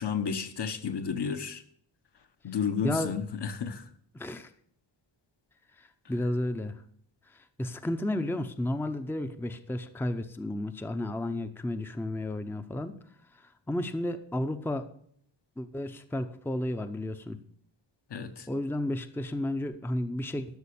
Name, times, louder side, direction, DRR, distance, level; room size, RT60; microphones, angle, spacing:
voice 1, 0.0-1.6 2.4-3.8 18.1-18.5, left 6 dB, 60° left, 1.3 m, -32 dB
voice 2, 4.1-4.5 5.8-6.8 7.3-13.0 13.3-14.9 15.6-17.4 18.5-20.5, left 1 dB, 5° left, 0.7 m, -32 dB
12.5 x 6.2 x 8.5 m
wide cardioid pair, 130°, 46 cm